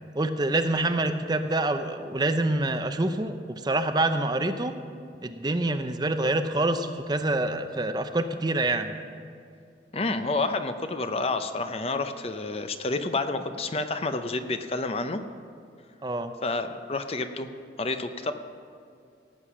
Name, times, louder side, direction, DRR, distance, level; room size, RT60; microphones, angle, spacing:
voice 1, 0.1-4.7 5.2-8.9 16.0-16.3, right 2 dB, 25° right, 8 dB, 0.6 m, -26 dB
voice 2, 9.9-15.2 16.4-17.5 17.8-18.3, left 3 dB, 35° left, 8 dB, 0.6 m, -29 dB
17.0 x 8.2 x 6.1 m, 2.4 s
head